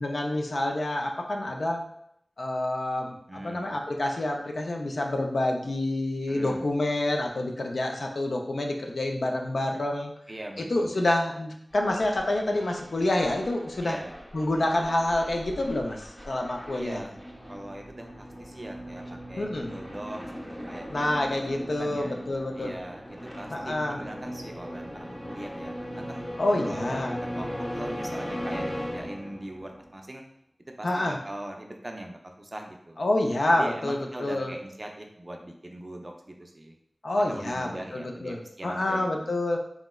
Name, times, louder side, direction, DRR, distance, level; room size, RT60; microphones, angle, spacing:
voice 1, 0.0-1.9 2.4-10.1 10.6-14.0 14.3-17.0 19.4-19.7 20.9-22.7 23.5-24.0 26.4-27.2 30.8-31.2 33.0-34.5 37.0-39.6, left 1 dB, 80° left, 1 dB, 0.4 m, -28 dB
voice 2, 3.3-3.7 6.3-6.6 10.3-11.0 13.8-14.1 16.7-17.2 17.5-20.2 20.5-21.4 21.8-22.1 22.6-26.3 26.6-30.2 30.8-33.0 33.5-36.7 37.1-39.3, right 1 dB, 35° right, 2 dB, 0.4 m, -41 dB
sound 1, 11.7-29.9, equal, 10° left, 0.6 m, -45 dB
sound 2, 17.1-29.7, equal, 40° left, 0.8 m, -38 dB
3.6 x 2.0 x 2.2 m, 0.73 s
wide cardioid pair, 70°, 0 cm